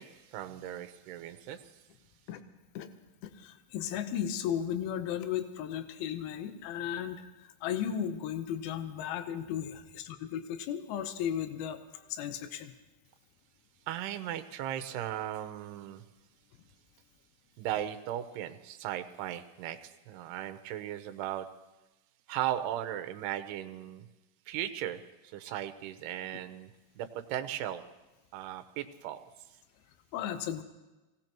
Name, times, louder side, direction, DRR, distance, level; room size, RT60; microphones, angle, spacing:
voice 1, 0.0-1.8 13.9-16.0 17.6-21.5 22.3-24.1 24.5-27.8 28.3-29.2, right 11 dB, 85° right, 8 dB, 2.8 m, -37 dB
voice 2, 3.2-7.2 7.6-12.7 30.1-30.6, left 9 dB, 75° left, 8 dB, 2.7 m, -35 dB
25.5 x 18.0 x 3.0 m, 1.1 s
omnidirectional pair, 4.6 m